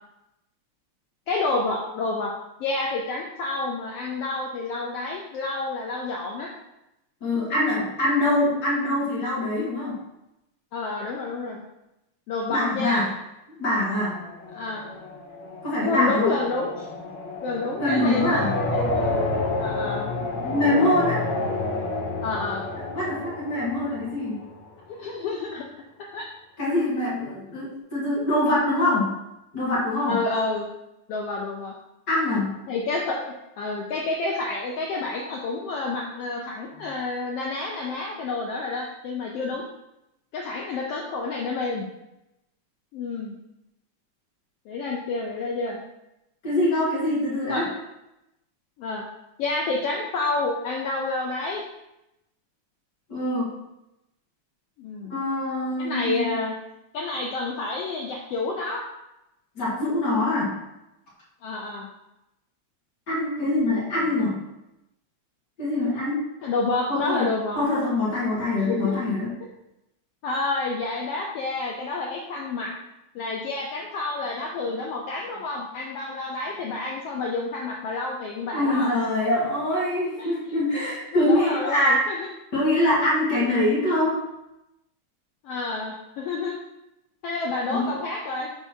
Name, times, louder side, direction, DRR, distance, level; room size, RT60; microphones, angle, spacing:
voice 1, 1.3-2.3 2.6-6.5 10.7-11.6 12.3-13.1 14.5-14.9 15.8-16.9 17.4-19.1 19.6-20.2 22.2-22.7 24.9-25.7 26.0-26.3 30.1-30.7 31.1-31.7 32.7-39.6 40.3-41.9 42.9-43.3 44.7-45.8 47.5-47.7 48.8-49.0 49.4-51.6 54.8-55.2 55.8-56.5 56.9-58.9 61.4-61.9 66.4-67.6 68.7-69.0 70.2-72.7 73.1-79.0 80.2-80.5 81.1-82.3 85.4-86.6 87.2-88.5, left 3 dB, 80° left, -1 dB, 1.3 m, -29 dB
voice 2, 7.2-10.0 12.5-13.1 13.6-14.2 15.6-16.3 17.8-18.5 20.4-21.3 22.9-24.4 26.6-29.2 29.5-30.2 32.1-32.5 46.4-47.7 53.1-53.5 55.1-56.3 59.6-60.6 63.1-64.4 65.6-66.2 66.9-67.3 67.6-69.3 78.5-82.1 82.5-84.2 87.7-88.0, left 1 dB, 40° left, -7 dB, 2.1 m, -24 dB
sound 1, 13.9-24.7, left 2 dB, 55° left, 1.4 m, -30 dB
6.0 x 3.4 x 5.5 m, 0.89 s
omnidirectional pair, 3.4 m